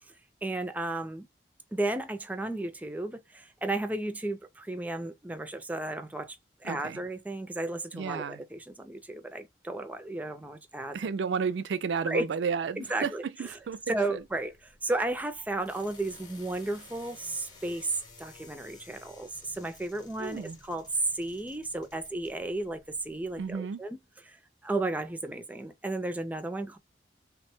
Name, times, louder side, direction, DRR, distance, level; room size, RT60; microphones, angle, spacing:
voice 1, 0.4-1.3 1.7-11.0 12.1-12.2 12.8-13.2 13.9-24.0 24.3-24.4 24.6-26.8, right 2 dB, 10° right, 0.4 m, -33 dB
voice 2, 6.6-7.0 7.9-8.4 10.9-13.8 14.1-14.2 20.2-20.6 23.4-23.8, right 6 dB, 85° right, 0.4 m, -32 dB
sound 1, 13.4-23.5, left 3 dB, 25° left, 0.8 m, -55 dB
3.3 x 2.1 x 4.2 m
head